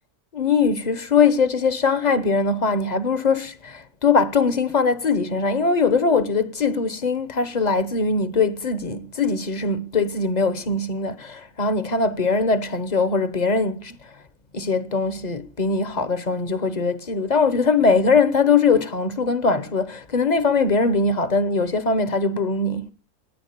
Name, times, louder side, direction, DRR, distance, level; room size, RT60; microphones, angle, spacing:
voice 1, 0.3-14.1 14.5-22.9, left 4 dB, 35° left, 1.0 m, -21 dB
18.5 x 10.5 x 6.7 m
omnidirectional pair, 1.4 m